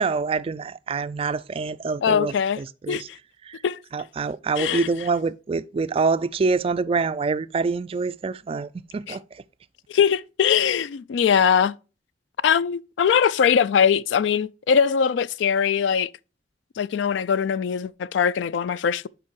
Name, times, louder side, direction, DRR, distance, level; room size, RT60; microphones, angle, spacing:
voice 1, 0.0-3.1 3.4-3.6 3.9-9.4, right 4 dB, 30° right, 0.3 m, -26 dB
voice 2, 2.0-2.6 2.9-3.0 3.6-3.8 4.6-4.9 9.9-11.7 12.4-16.1 16.8-19.1, left 7 dB, 75° left, 0.3 m, -21 dB
7.2 x 5.1 x 4.6 m
head